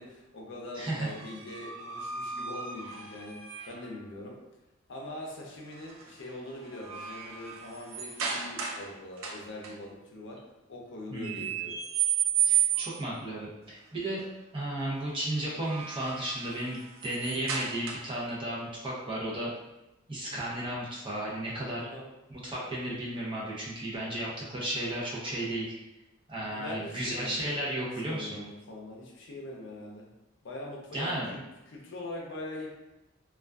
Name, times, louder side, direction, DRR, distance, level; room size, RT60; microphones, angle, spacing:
voice 1, 0.0-3.4 3.7-4.4 4.9-10.4 10.7-11.8 21.8-22.1 26.4-27.5 28.1-30.1 30.4-32.7, left 1 dB, 65° left, -1 dB, 0.5 m, -42 dB
voice 2, 0.8-1.1 11.1-11.5 12.4-14.3 14.5-19.5 20.1-21.9 22.3-25.8 26.3-28.4 30.9-31.3, right 1 dB, 25° right, -6 dB, 0.6 m, -34 dB
sound 1, 1.0-3.9 5.7-6.0 6.5-8.9 9.2-9.7 11.2-13.1 15.4-18.3, right 9 dB, 85° right, 0.4 m, -33 dB
2.4 x 2.3 x 2.2 m, 1.0 s
head